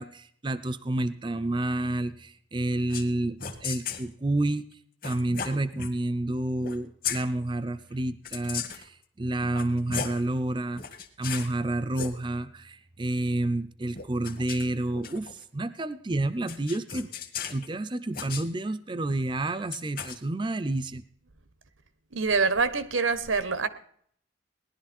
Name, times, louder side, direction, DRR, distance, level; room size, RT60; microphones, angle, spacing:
voice 1, 0.0-4.7 5.0-10.8 11.2-17.1 17.5-21.0, right 1 dB, 25° right, 11 dB, 0.5 m, -29 dB
sound 1, 2.9-3.1 3.4-4.1 5.0-5.9 6.6-7.2 8.2-8.9 9.4-10.2 10.8-11.5 11.9-12.1 13.9-15.4 16.5-17.7 18.1-18.5 19.7-20.2, left 7 dB, 45° left, 1.5 m, -36 dB
voice 2, 22.1-23.7, right 4 dB, 85° right, 13 dB, 1.1 m, -25 dB
18.0 x 11.5 x 4.3 m, 0.63 s
head